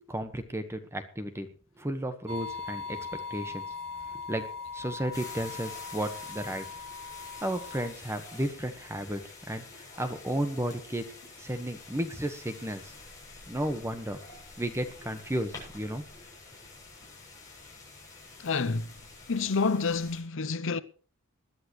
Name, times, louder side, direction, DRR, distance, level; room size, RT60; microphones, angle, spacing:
voice 1, 0.1-1.5 1.8-3.6 4.3-4.4 4.7-6.6 7.4-9.2 9.5-11.0 11.4-12.9 13.5-14.2 14.6-16.0, right 1 dB, 15° right, 1.4 m, -33 dB
sound 1, 2.3-7.9, left 5 dB, 30° right, 3.2 m, -40 dB
sound 2, 5.1-20.2, left 3 dB, 15° left, 7.9 m, -48 dB
voice 2, 18.4-18.9 19.3-20.8, left 4 dB, 65° left, 0.8 m, -28 dB
20.5 x 11.0 x 3.2 m
head